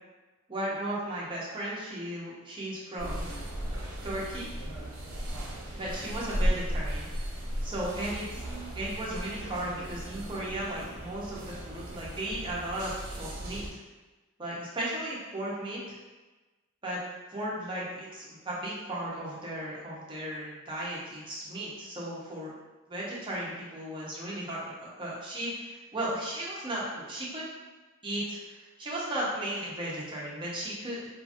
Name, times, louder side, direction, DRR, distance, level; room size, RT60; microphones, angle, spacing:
voice 1, 0.5-3.3 4.0-4.5 5.7-7.1 7.6-8.4 8.7-13.8 14.4-16.0 16.8-17.0 17.3-22.5 22.9-27.5 28.0-31.1, right 1 dB, 25° right, -6 dB, 0.7 m, -35 dB
sound 1, 3.0-13.7, equal, 90° right, 0.6 m, -35 dB
2.8 x 2.5 x 2.5 m, 1.2 s
head